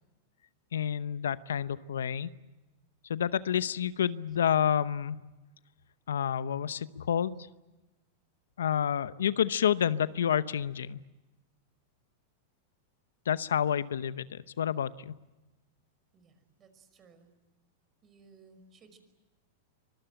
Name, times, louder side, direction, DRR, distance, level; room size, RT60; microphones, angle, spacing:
voice 1, 0.7-2.3 3.1-5.2 6.1-7.3 8.6-11.0 13.3-15.1, left 9 dB, 90° left, 16 dB, 0.8 m, -29 dB
voice 2, 16.1-17.3 18.0-19.0, right 4 dB, 30° right, 9 dB, 5.4 m, -59 dB
25.0 x 21.5 x 9.0 m, 1.1 s
hypercardioid pair, 120°, 0 cm